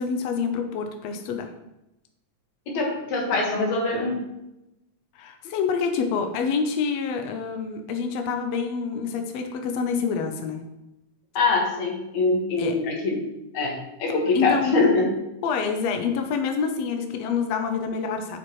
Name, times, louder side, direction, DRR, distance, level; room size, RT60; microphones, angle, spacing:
voice 1, 0.0-1.5 5.1-10.6 12.6-12.7 14.3-14.7 15.4-18.4, left 5 dB, 80° left, 5 dB, 1.5 m, -27 dB
voice 2, 2.7-4.3 11.3-13.3 13.5-15.1, left 3 dB, 60° left, 0 dB, 2.7 m, -23 dB
10.5 x 7.4 x 3.1 m, 0.91 s
omnidirectional pair, 4.1 m